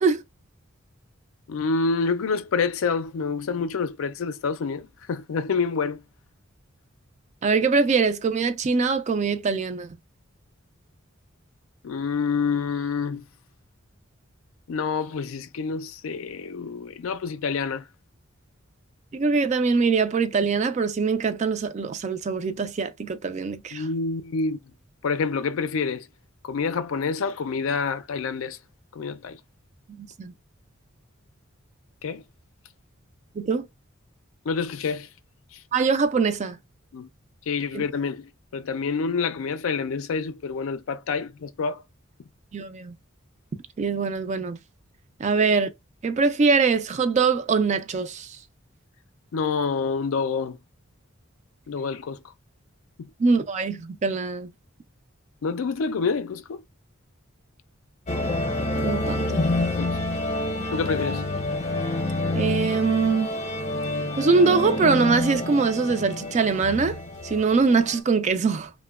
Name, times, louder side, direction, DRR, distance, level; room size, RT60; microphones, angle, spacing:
voice 1, 1.5-6.0 11.8-13.2 14.7-17.9 23.7-24.6 25.0-26.1 26.4-28.6 28.9-29.4 32.0-32.2 34.5-35.1 35.5-35.6 36.9-37.1 37.5-41.8 49.3-50.6 51.7-52.2 53.0-53.1 55.4-56.6 59.8-60.0 60.7-61.3, left 5 dB, 75° left, 0.4 m, -27 dB
voice 2, 7.4-10.0 19.1-23.8 29.9-30.3 33.4-33.7 35.7-36.6 37.7-37.8 42.5-43.0 43.8-44.6 45.2-45.7 46.0-48.4 53.2-54.5 58.8-59.4 62.3-63.3 64.2-67.0 67.2-68.7, right 4 dB, 35° right, 0.3 m, -23 dB
sound 1, 58.1-68.0, left 2 dB, 30° left, 0.7 m, -28 dB
2.9 x 2.1 x 2.2 m
head